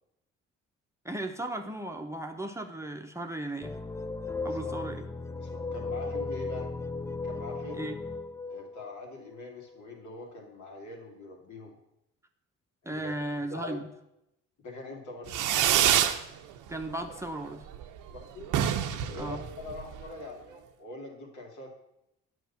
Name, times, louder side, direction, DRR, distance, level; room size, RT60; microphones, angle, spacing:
voice 1, 1.0-3.7 4.4-5.0 7.7-8.0 12.8-13.9 16.7-17.7 19.1-19.4, right 1 dB, 10° right, 4 dB, 0.9 m, -36 dB
sound 1, 3.6-9.8, left 3 dB, 10° left, 0.4 m, -36 dB
voice 2, 4.4-4.9 5.3-6.7 7.2-7.9 8.5-11.7 12.8-13.1 13.5-13.9 14.6-15.4 18.1-18.5 19.1-21.8, left 2 dB, 70° left, 0 dB, 2.6 m, -43 dB
Fireworks, 15.3-16.2 16.6-17.1 17.4-17.5 17.7-17.8 18.1-18.2 18.4-20.1, right 10 dB, 90° right, 0.8 m, -26 dB
9.2 x 6.5 x 5.8 m, 0.84 s
cardioid pair, 90°, 30 cm